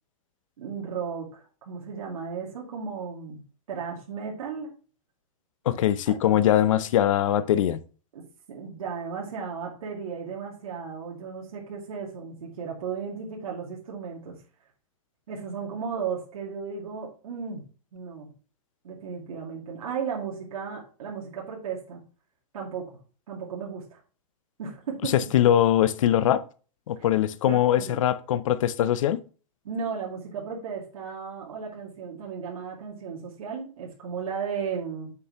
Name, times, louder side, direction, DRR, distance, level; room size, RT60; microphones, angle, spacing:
voice 1, 0.6-3.4 3.7-4.7 6.1-6.8 8.1-14.4 15.3-17.6 17.9-18.3 18.8-22.0 22.5-23.0 23.3-24.0 24.6-25.1 27.5-28.0 29.6-35.1, right 6 dB, 85° right, 2.3 m, -35 dB
voice 2, 5.7-7.8 25.0-26.4 26.9-29.2, left 11 dB, 65° left, 0.7 m, -22 dB
6.8 x 6.8 x 3.0 m
supercardioid pair, 165°, 18 cm